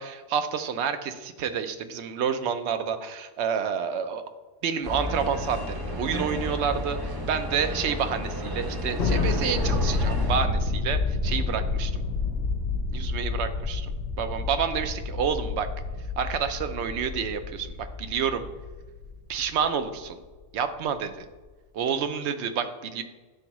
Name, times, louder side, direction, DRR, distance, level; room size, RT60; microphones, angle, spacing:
voice 1, 0.0-4.2 4.6-12.0 12.9-13.8 14.2-15.7 16.2-18.5 19.3-20.2 20.5-21.3 21.7-23.0, right 7 dB, 75° right, 9 dB, 0.8 m, -29 dB
sound 1, 4.8-10.4, left 1 dB, 25° right, 0.5 m, -32 dB
Thunder, 9.0-19.6, left 3 dB, 70° left, 0.9 m, -29 dB
9.8 x 3.5 x 3.0 m, 1.3 s
omnidirectional pair, 1.2 m